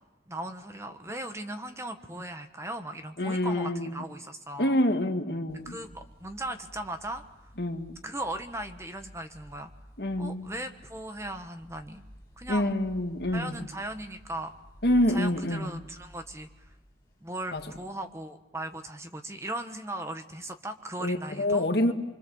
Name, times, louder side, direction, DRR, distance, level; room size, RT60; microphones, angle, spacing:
voice 1, 0.3-4.8 5.6-7.2 8.0-9.7 10.2-12.0 12.4-12.7 13.3-14.5 15.1-16.7 17.2-21.7, right 1 dB, 15° right, 1.2 m, -38 dB
voice 2, 3.2-4.0 4.6-5.8 7.6-8.0 10.0-10.5 12.5-13.6 14.8-15.7 17.5-17.6 21.0-21.9, left 1 dB, 55° left, 1.9 m, -27 dB
sound 1, 5.5-18.1, equal, 15° left, 4.4 m, -53 dB
26.0 x 25.0 x 7.1 m
head